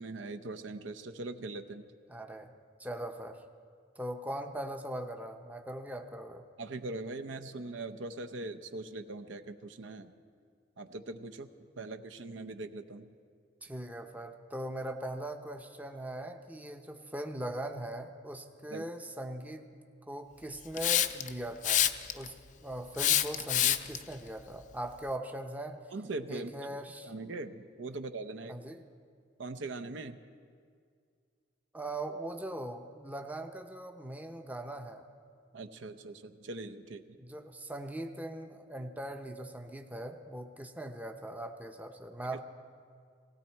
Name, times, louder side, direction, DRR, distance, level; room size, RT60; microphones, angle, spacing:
voice 1, 0.0-1.9 6.6-10.1 10.8-11.5 11.8-13.1 18.7-18.8 25.9-26.5 27.0-28.6 29.4-30.2 35.5-37.0, right 2 dB, 80° right, 8 dB, 0.7 m, -41 dB
voice 2, 2.1-2.5 2.8-3.4 4.0-6.5 13.6-19.7 20.1-25.8 26.3-27.1 28.5-28.8 31.7-35.1 37.2-42.4, right 1 dB, 10° right, 6 dB, 0.6 m, -40 dB
Hiss, 20.8-21.3 21.6-22.3 23.0-24.0, left 11 dB, 40° left, 0.4 m, -26 dB
18.0 x 16.5 x 4.5 m, 2.2 s
head